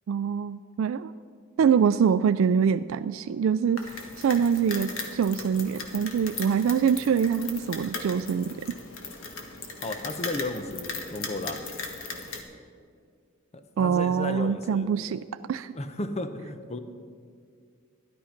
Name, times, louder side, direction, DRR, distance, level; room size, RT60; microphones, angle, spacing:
voice 1, 0.1-1.1 1.6-8.7 13.8-15.7, right 7 dB, 75° right, 12 dB, 0.3 m, -25 dB
sound 1, 3.8-12.4, left 3 dB, 85° left, 1.6 m, -38 dB
voice 2, 9.8-11.6 13.5-14.9 15.7-16.8, left 2 dB, 30° left, 9 dB, 0.7 m, -34 dB
13.0 x 11.0 x 5.8 m, 2.2 s
head